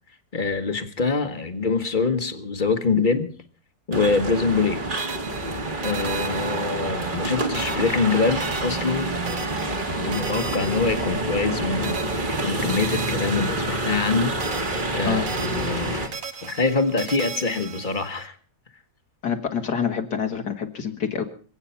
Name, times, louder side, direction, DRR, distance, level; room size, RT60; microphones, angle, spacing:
voice 1, 0.3-3.3 3.9-4.8 5.8-9.1 9.7-14.4 14.9-16.1 16.4-18.3, left 4 dB, 30° left, 9 dB, 1.4 m, -25 dB
sound 1, 3.9-16.1, right 2 dB, 30° right, 1.9 m, -28 dB
sound 2, 5.0-7.3 7.5-11.5 11.8-14.1 14.4-18.3, right 5 dB, 55° right, 1.6 m, -38 dB
voice 2, 19.2-21.2, left 7 dB, 80° left, 4 dB, 2.4 m, -26 dB
26.5 x 8.8 x 5.7 m, 0.42 s
omnidirectional pair, 1.7 m